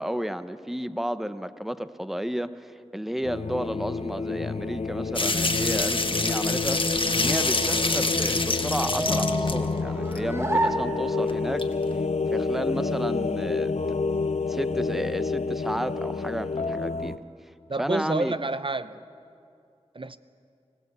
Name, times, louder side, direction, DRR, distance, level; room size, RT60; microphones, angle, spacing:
voice 1, 0.0-6.8 7.1-11.6 12.3-13.7 14.5-17.2 17.8-18.4, equal, ahead, 12 dB, 0.8 m, -32 dB
sound 1, 3.2-17.2, left 4 dB, 75° left, 0.8 m, -29 dB
sound 2, 5.2-9.7 10.1-10.2 11.3-11.4 11.6-11.7, left 2 dB, 50° left, 1.3 m, -26 dB
sound 3, 7.0-11.6, right 1 dB, 25° right, 1.6 m, -32 dB
voice 2, 17.7-19.0 19.9-20.2, right 3 dB, 50° right, 13 dB, 0.6 m, -29 dB
24.5 x 16.5 x 8.2 m, 2.5 s
wide cardioid pair, 45°, 11 cm